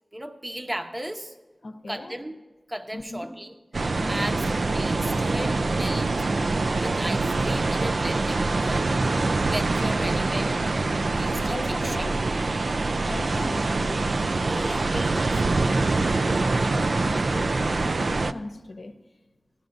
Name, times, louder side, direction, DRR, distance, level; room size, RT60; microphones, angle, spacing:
voice 1, 0.1-1.3 1.9-2.3 2.7-3.5 4.1-6.1 6.8-8.9 9.3-10.5 11.2-12.0 14.4-15.4, right 1 dB, 25° right, 5 dB, 0.9 m, -35 dB
voice 2, 1.6-2.2 2.9-3.3 4.0-4.4 9.8-10.3 11.5-12.4 13.0-14.1 15.6-19.0, left 2 dB, 70° left, 8 dB, 0.7 m, -39 dB
sound 1, 3.7-18.3, right 3 dB, 75° right, 0.3 m, -25 dB
16.0 x 12.0 x 2.6 m, 1.3 s
wide cardioid pair, 55°, 0 cm